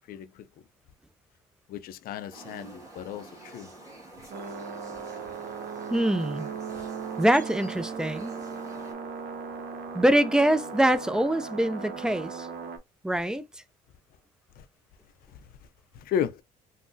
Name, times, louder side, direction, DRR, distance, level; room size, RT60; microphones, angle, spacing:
voice 1, 1.7-3.7 16.1-16.4, left 8 dB, 60° left, 0.4 m, -33 dB
sound 1, 2.3-8.9, right 2 dB, 20° right, 1.6 m, -48 dB
sound 2, 4.3-12.8, right 6 dB, 65° right, 0.7 m, -37 dB
voice 2, 5.9-6.5 7.2-8.3 9.9-12.5 13.0-13.5, right 1 dB, 5° right, 0.3 m, -24 dB
3.7 x 2.0 x 2.6 m
cardioid pair, 110°, 17 cm